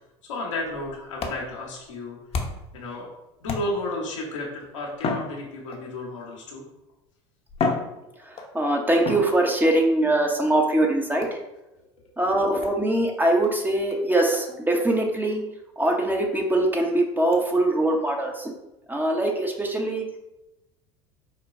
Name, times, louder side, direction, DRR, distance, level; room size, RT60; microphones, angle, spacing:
voice 1, 0.2-2.4 2.7-3.1 3.4-6.7, left 2 dB, 85° left, -2 dB, 1.2 m, -33 dB
sound 1, 0.6-2.8 3.4-4.0 4.9-6.0 6.9-7.0 7.5-8.6 9.0-9.8 11.2-11.5 12.6-12.8 13.4-13.5 13.9-14.0 14.3-14.5 14.8-14.9 15.3-15.4 15.8-15.9 16.3-16.4 17.3-17.5, left 4 dB, 40° left, 0.9 m, -32 dB
voice 2, 8.5-11.3 12.2-15.4 15.8-18.5 18.9-20.1, right 1 dB, 10° right, 2 dB, 0.9 m, -22 dB
4.9 x 2.3 x 4.2 m, 0.95 s
hypercardioid pair, 80°, 15 cm